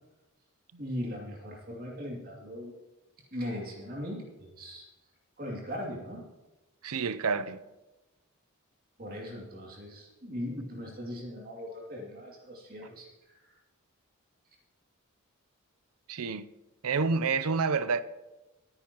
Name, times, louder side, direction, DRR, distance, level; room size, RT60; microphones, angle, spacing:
voice 1, 0.8-2.7 3.3-4.9 5.4-6.2 9.0-13.6, equal, 40° right, 2.6 m, -39 dB
voice 2, 6.8-7.6 16.1-16.5 16.8-18.0, right 4 dB, 80° right, 0.6 m, -28 dB
22.0 x 9.8 x 3.0 m
head